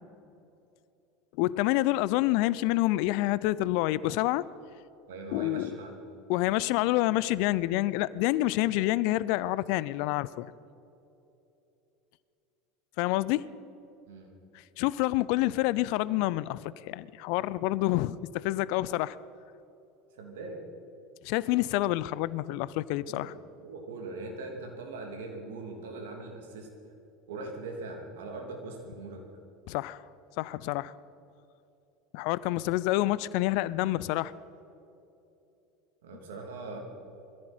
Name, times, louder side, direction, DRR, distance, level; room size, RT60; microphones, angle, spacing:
voice 1, 1.4-4.5 5.3-5.7 6.3-10.5 13.0-13.4 14.8-19.2 21.2-23.3 29.7-30.0 30.4-30.9 32.1-34.3, left 17 dB, 60° left, 19 dB, 0.4 m, -28 dB
voice 2, 5.1-6.0 14.1-14.3 20.1-20.6 23.1-23.3 23.6-26.7 27.3-29.2 36.0-36.8, right 3 dB, 70° right, 2 dB, 3.0 m, -41 dB
21.5 x 14.5 x 4.4 m, 2.9 s
hypercardioid pair, 75°, 0 cm